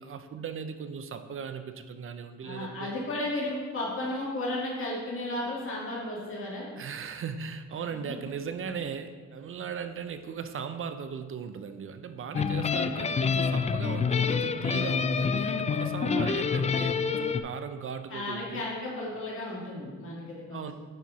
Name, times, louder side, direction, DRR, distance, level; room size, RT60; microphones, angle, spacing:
voice 1, 0.0-2.9 6.8-18.7 20.5-20.7, right 6 dB, 45° right, 9 dB, 0.5 m, -38 dB
voice 2, 2.4-6.7 7.9-8.0 16.0-16.4 18.1-20.7, left 1 dB, 45° left, -5 dB, 2.3 m, -34 dB
sound 1, 12.3-17.4, left 5 dB, 25° left, 0.3 m, -27 dB
9.0 x 4.4 x 4.1 m, 1.5 s
cardioid pair, 90°, 30 cm